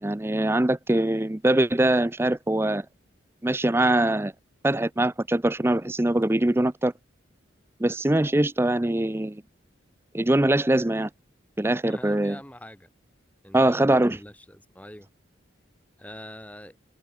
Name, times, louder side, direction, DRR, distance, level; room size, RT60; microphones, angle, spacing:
voice 1, 0.0-2.9 3.4-4.3 4.6-6.9 7.8-9.4 10.1-11.1 11.6-12.4 13.5-14.2, right 1 dB, 10° right, 0.5 m, -22 dB
voice 2, 11.8-12.9 13.4-15.1 16.0-16.8, left 1 dB, 5° left, 4.0 m, -43 dB
head